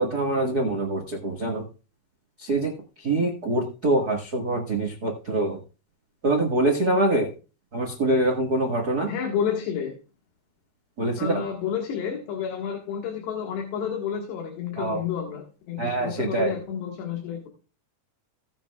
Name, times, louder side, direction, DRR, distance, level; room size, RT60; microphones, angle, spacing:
voice 1, 0.0-1.6 2.4-2.7 3.0-5.6 6.2-7.3 7.7-9.1 11.0-11.4 14.8-15.0 15.8-16.5, right 2 dB, 90° right, 1 dB, 0.8 m, -24 dB
voice 2, 9.1-10.0 11.2-17.5, left 8 dB, 75° left, 0 dB, 3.9 m, -30 dB
17.0 x 8.9 x 2.4 m, 0.34 s
omnidirectional pair, 4.9 m